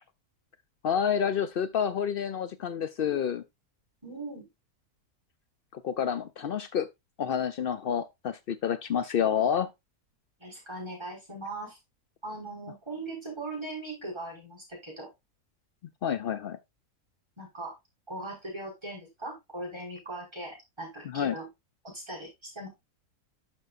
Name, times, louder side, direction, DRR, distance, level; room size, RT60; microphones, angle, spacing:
voice 1, 0.8-3.4 5.7-6.9 7.2-9.7 16.0-16.6 21.0-21.3, left 8 dB, 90° left, 0.4 m, -29 dB
voice 2, 4.0-4.5 10.4-11.8 12.2-15.1 17.4-17.7 18.1-21.5 21.8-22.7, right 2 dB, 15° right, 5.7 m, -39 dB
11.5 x 6.1 x 2.5 m
omnidirectional pair, 1.6 m